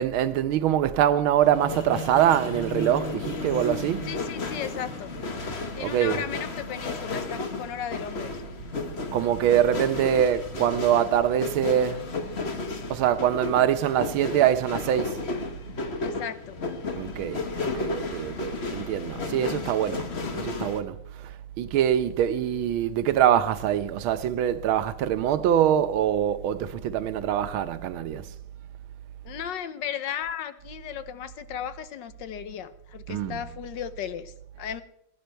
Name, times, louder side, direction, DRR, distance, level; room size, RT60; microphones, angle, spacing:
voice 1, 0.0-4.1 5.8-6.2 9.1-12.1 12.9-15.2 17.0-20.1 20.4-28.3 33.1-33.4, right 10 dB, 75° right, 1.6 m, -24 dB
sound 1, 1.4-20.8, left 3 dB, 35° left, 1.3 m, -33 dB
voice 2, 4.0-5.1 5.8-8.3 16.0-16.6 29.2-34.8, left 9 dB, 65° left, 1.4 m, -35 dB
19.5 x 10.5 x 4.5 m
omnidirectional pair, 2.3 m